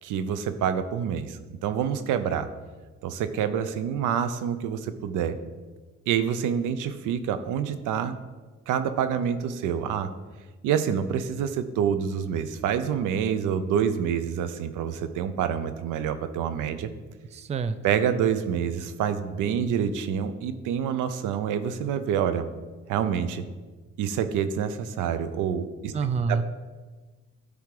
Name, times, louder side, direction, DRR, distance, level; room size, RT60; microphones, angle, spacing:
voice 1, 0.0-2.5 3.0-5.4 6.1-8.2 8.7-10.1 10.6-16.9 17.8-22.5 22.9-23.4 24.0-25.9 26.3-26.4, right 8 dB, 90° right, 11 dB, 0.6 m, -27 dB
voice 2, 17.3-17.8 25.9-26.4, right 5 dB, 25° right, 12 dB, 0.4 m, -27 dB
10.0 x 3.6 x 4.8 m, 1.3 s
cardioid pair, 90°, 30 cm